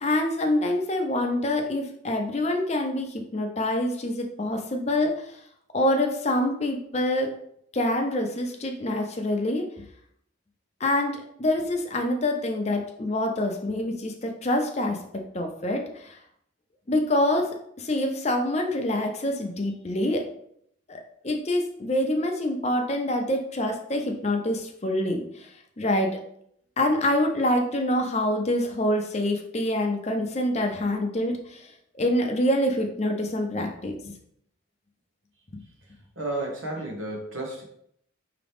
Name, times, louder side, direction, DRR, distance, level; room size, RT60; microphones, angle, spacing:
voice 1, 0.0-5.1 5.7-7.3 7.7-9.6 10.8-16.1 16.9-20.2 20.9-25.3 25.8-26.2 26.8-31.6 32.0-34.1 35.5-35.6, left 1 dB, 35° left, 3 dB, 0.6 m, -26 dB
voice 2, 36.1-37.6, right 2 dB, 80° right, -1 dB, 1.4 m, -32 dB
4.9 x 2.9 x 3.5 m, 0.70 s
head